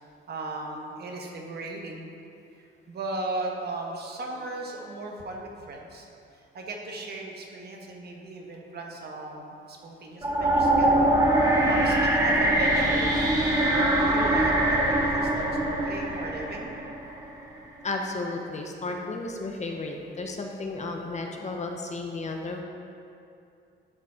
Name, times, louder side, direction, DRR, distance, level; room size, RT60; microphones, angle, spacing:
voice 1, 0.3-2.1 2.6-6.1 6.5-11.0 11.7-13.3 13.7-16.7, right 2 dB, 55° right, 0 dB, 1.3 m, -36 dB
sound 1, 10.2-17.3, right 1 dB, 20° right, 1.5 m, -23 dB
voice 2, 17.8-22.6, left 3 dB, 35° left, 2 dB, 0.9 m, -33 dB
11.5 x 4.0 x 4.4 m, 2.5 s
cardioid pair, 90°, 20 cm